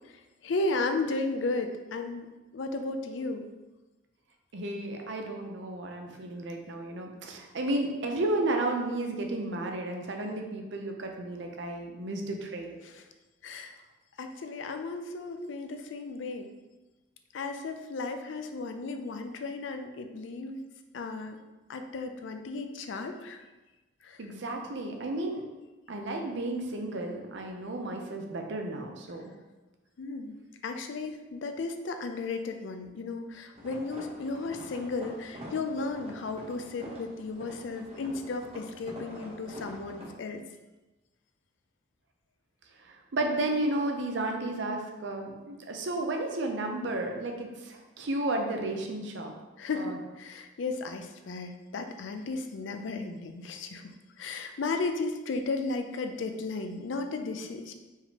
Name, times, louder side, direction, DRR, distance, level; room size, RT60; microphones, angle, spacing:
voice 1, 0.4-2.3 2.5-3.5 12.8-12.9 13.4-13.7 14.2-16.5 17.3-20.6 20.9-21.4 21.7-23.4 24.0-24.2 30.0-30.4 30.6-40.4 49.6-57.7, left 3 dB, 70° left, 6 dB, 0.4 m, -34 dB
voice 2, 4.5-12.8 24.2-25.4 25.9-29.3 42.8-49.3 49.7-50.0, right 2 dB, 65° right, 3 dB, 0.6 m, -33 dB
sound 1, 33.5-40.1, equal, 30° right, 0.8 m, -45 dB
4.6 x 3.6 x 2.8 m, 1.1 s
head